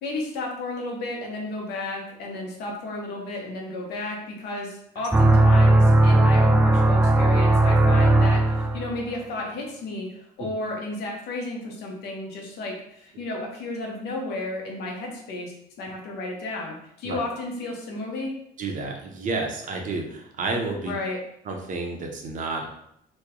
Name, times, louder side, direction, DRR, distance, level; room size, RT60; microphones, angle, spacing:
voice 1, 0.0-18.3 20.8-21.2, left 2 dB, 80° left, 0 dB, 0.9 m, -33 dB
sound 1, 5.1-9.0, right 2 dB, 10° right, 0.3 m, -17 dB
voice 2, 18.6-20.9 21.4-22.7, right 3 dB, 50° right, 2 dB, 0.7 m, -30 dB
3.0 x 2.2 x 3.6 m, 0.75 s
cardioid pair, 110°, 17 cm